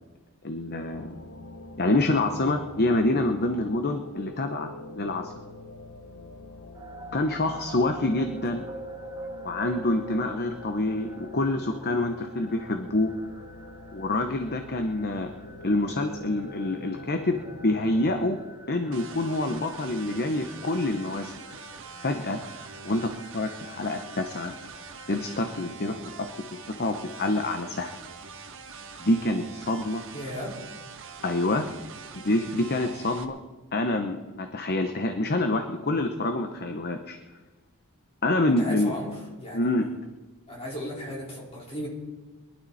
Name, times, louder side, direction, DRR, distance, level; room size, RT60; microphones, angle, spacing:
voice 1, 0.4-1.1 1.8-5.3 7.1-8.7 9.4-13.1 13.9-15.3 15.6-18.4 18.7-21.3 22.0-22.4 22.8-24.5 25.1-26.3 26.7-27.9 29.0-30.0 31.2-31.7 32.1-33.4 33.7-37.2 38.2-39.0 39.5-39.9, left 2 dB, 45° left, 6 dB, 1.0 m, -27 dB
sound 1, 0.9-18.3, left 2 dB, 70° left, 1.2 m, -45 dB
sound 2, 6.7-25.7, right 1 dB, 20° right, 1.1 m, -47 dB
sound 3, 18.9-33.2, right 5 dB, 60° right, 1.3 m, -44 dB
voice 2, 30.1-30.5 38.6-39.9 40.5-41.9, equal, 25° left, -4 dB, 4.7 m, -36 dB
22.5 x 12.0 x 4.2 m, 1.2 s
head